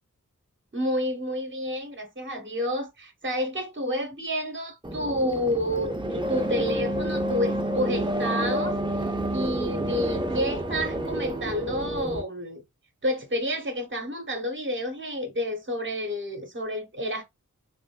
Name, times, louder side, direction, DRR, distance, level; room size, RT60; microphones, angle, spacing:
voice 1, 0.7-12.6 13.0-17.2, equal, 35° right, 0.9 m, -30 dB
sound 1, 4.8-12.2, right 1 dB, 15° right, 0.6 m, -29 dB
3.1 x 2.5 x 2.2 m
wide cardioid pair, 45°, 33 cm